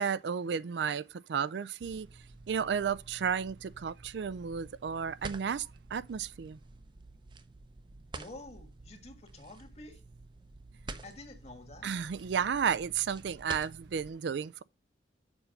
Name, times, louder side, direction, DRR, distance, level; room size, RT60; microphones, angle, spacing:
voice 1, 0.0-2.1 2.5-6.6 11.8-14.6, right 7 dB, 70° right, 0.4 m, -33 dB
sound 1, 1.8-14.1, right 3 dB, 25° right, 0.6 m, -49 dB
voice 2, 8.1-10.0 11.0-11.9, left 2 dB, 35° left, 1.7 m, -49 dB
7.1 x 5.6 x 5.2 m
head